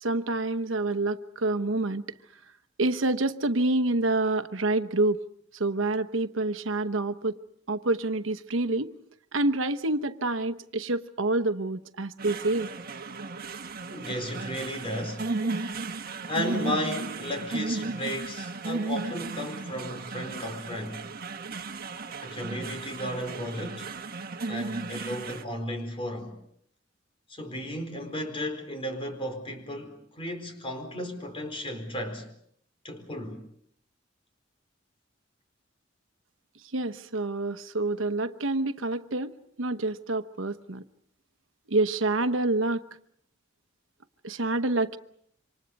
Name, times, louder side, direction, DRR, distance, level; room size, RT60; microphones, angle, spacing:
voice 1, 0.0-2.0 2.8-5.2 5.5-7.4 7.7-8.9 9.3-12.7 36.7-39.3 39.6-40.8 41.7-42.8 44.2-45.0, right 2 dB, 85° right, 1.1 m, -27 dB
sound 1, 12.2-25.4, right 3 dB, 50° right, 1.4 m, -35 dB
voice 2, 13.9-15.3 16.3-21.0 22.2-23.9 24.5-26.4 27.3-32.3 32.8-33.4, equal, 30° left, 4.3 m, -34 dB
27.5 x 25.5 x 5.4 m
head